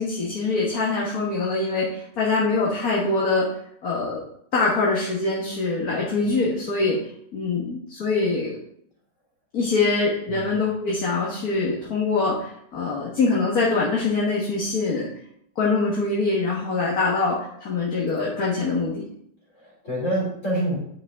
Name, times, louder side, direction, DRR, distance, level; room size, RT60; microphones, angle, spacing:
voice 1, 0.0-3.5 3.8-4.2 4.5-7.0 7.3-8.6 9.5-15.1 15.6-19.0, left 3 dB, 70° left, -5 dB, 2.0 m, -24 dB
voice 2, 10.3-10.6 19.6-20.8, right 1 dB, 50° left, -3 dB, 3.5 m, -27 dB
10.5 x 5.5 x 3.6 m, 0.70 s
omnidirectional pair, 1.6 m